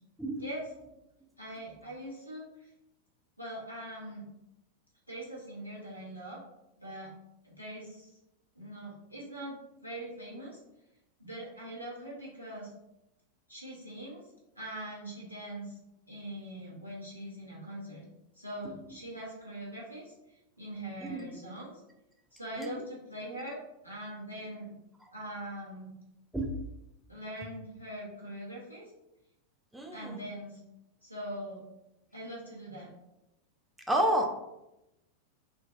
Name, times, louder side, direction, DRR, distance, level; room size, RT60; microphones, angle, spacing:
voice 1, 0.4-0.7 1.4-2.4 3.4-4.2 5.1-6.4 6.8-7.2 7.4-8.1 8.5-10.6 11.2-12.7 13.5-14.2 14.6-15.7 16.1-18.0 18.4-20.1 20.6-21.7 22.3-23.6 23.8-24.7 25.1-25.9 27.1-28.8 29.9-30.6 31.0-31.6 32.1-32.9, right 1 dB, 90° left, -5 dB, 1.1 m, -42 dB
voice 2, 29.7-30.2 33.9-34.3, right 1 dB, 5° right, 1 dB, 0.4 m, -30 dB
3.7 x 2.4 x 2.6 m, 0.90 s
figure-of-eight pair, 90°, 0 cm